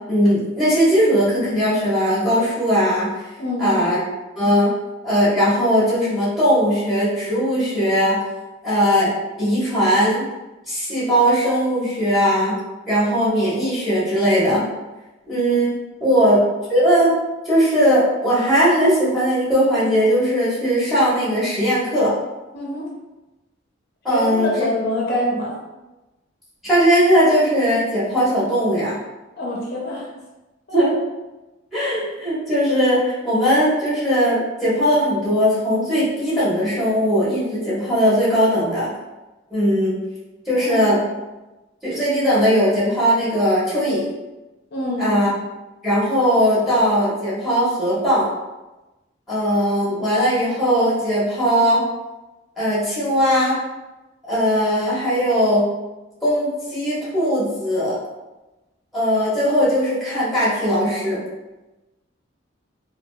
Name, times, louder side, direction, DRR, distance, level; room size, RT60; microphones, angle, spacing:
voice 1, 0.1-3.1 3.6-4.0 4.3-4.7 5.0-8.2 8.6-9.1 9.4-10.2 10.7-12.6 12.9-14.6 15.3-15.7 16.0-16.4 16.7-17.1 17.4-22.1 24.0-24.5 26.6-28.9 30.7-30.9 31.7-38.9 39.5-40.0 40.5-41.0 41.8-44.1 45.0-45.3 45.8-48.3 49.3-51.8 52.6-53.6 54.3-55.7 56.2-58.0 58.9-61.2, equal, ahead, -10 dB, 1.3 m, -19 dB
voice 2, 3.4-3.8 16.1-16.2 22.5-22.9 24.1-25.6 29.4-30.1 30.7-30.8 40.5-40.8 44.7-45.1, left 1 dB, 55° left, -3 dB, 0.6 m, -25 dB
3.9 x 2.3 x 2.3 m, 1.1 s
head